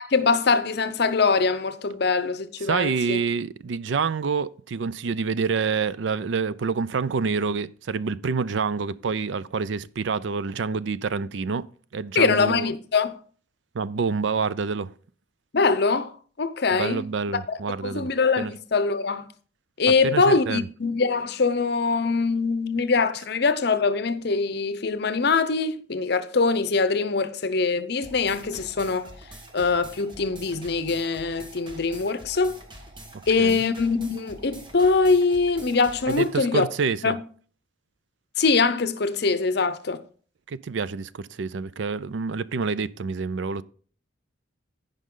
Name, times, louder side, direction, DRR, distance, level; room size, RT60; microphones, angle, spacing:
voice 1, 0.1-3.2 12.1-13.1 15.5-16.1 16.4-17.0 17.5-17.6 17.8-19.3 19.8-29.1 29.5-32.6 33.3-36.6 37.0-37.2 38.4-40.0, left 4 dB, 55° left, 0.7 m, -23 dB
voice 2, 2.7-11.7 11.9-12.7 13.7-14.9 16.7-18.1 18.4-18.5 20.0-20.7 33.4-33.6 36.1-37.1 40.5-43.6, right 5 dB, 70° right, 0.4 m, -27 dB
sound 1, 28.0-36.4, right 1 dB, 25° right, 1.3 m, -45 dB
15.5 x 5.3 x 3.8 m
head